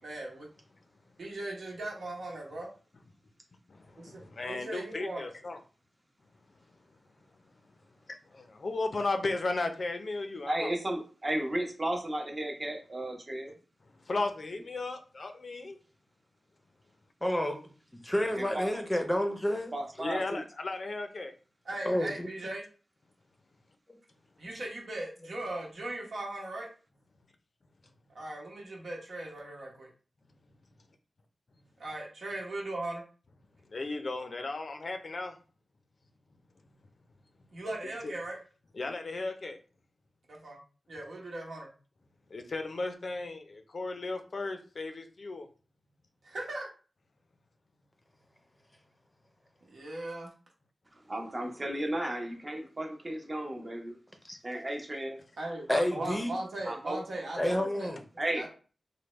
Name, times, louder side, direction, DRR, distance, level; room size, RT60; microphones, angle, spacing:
voice 1, 0.0-0.5 1.2-2.7 3.9-5.3 21.6-22.6 24.4-26.7 28.1-29.9 31.8-33.0 37.5-38.4 40.3-40.6 40.9-41.7 46.2-46.7 49.6-50.3 55.4-55.7 56.0-57.9 58.3-58.5, right 2 dB, 75° right, 1.1 m, -38 dB
voice 2, 3.7-5.6 8.1-10.7 13.9-15.8 20.0-21.3 33.7-35.4 38.0-38.1 38.7-39.6 42.3-45.5 52.0-52.1, left 3 dB, 55° left, 0.5 m, -35 dB
voice 3, 10.5-13.5 18.3-18.7 19.7-20.4 51.1-54.0 54.4-55.2 55.7-56.1 56.6-57.0 58.2-58.4, right 1 dB, 35° right, 0.8 m, -34 dB
voice 4, 17.2-17.6 18.0-19.7 21.8-22.3 54.2-54.4 55.7-56.3 57.4-58.0, left 1 dB, 10° left, 0.6 m, -29 dB
3.3 x 2.1 x 3.1 m
wide cardioid pair, 85°, 0 cm